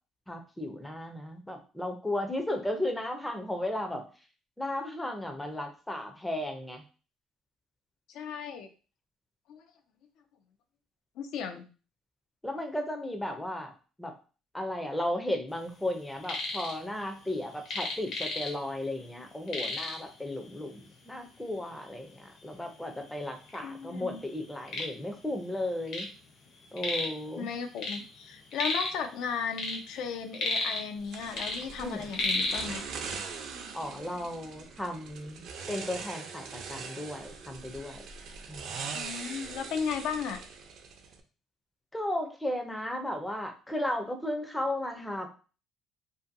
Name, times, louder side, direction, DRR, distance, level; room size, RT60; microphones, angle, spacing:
voice 1, 0.3-4.0 4.6-6.8 12.4-13.7 14.0-14.1 14.5-26.1 26.7-27.5 31.8-32.1 33.7-38.1 38.5-38.9 41.9-45.3, left 1 dB, 5° left, 4 dB, 0.4 m, -35 dB
voice 2, 8.1-8.7 9.5-9.6 11.2-11.6 23.6-24.2 27.4-32.8 38.9-40.4, left 6 dB, 75° left, 6 dB, 0.4 m, -35 dB
sound 1, 16.0-16.8 17.0-18.8 19.1-19.2 19.5-20.1 20.9-21.0 21.5-21.6 22.4-22.5 22.8-23.6 24.1-26.2 26.4-27.2 27.5-29.0 29.4-31.0 31.3-32.7, left 2 dB, 55° left, 0.8 m, -33 dB
sound 2, 31.1-41.2, right 5 dB, 60° right, 0.4 m, -42 dB
2.6 x 2.5 x 2.5 m, 0.35 s
cardioid pair, 135°, 0 cm